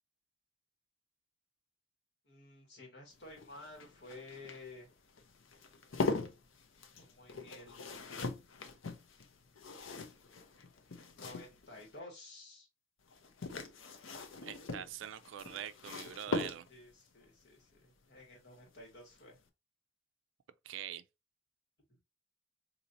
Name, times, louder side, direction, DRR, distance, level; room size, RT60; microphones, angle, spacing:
voice 1, 2.2-4.9 7.0-8.4 11.1-12.7 16.7-19.4 21.9-22.0, left 2 dB, 55° left, 1.7 m, -53 dB
sound 1, 3.1-11.9 13.1-17.0 18.6-18.9 19.2-19.3, left 3 dB, 80° left, 0.7 m, -41 dB
voice 2, 14.4-16.7 20.6-21.0, right 10 dB, 75° right, 0.3 m, -44 dB
4.1 x 2.8 x 2.6 m
head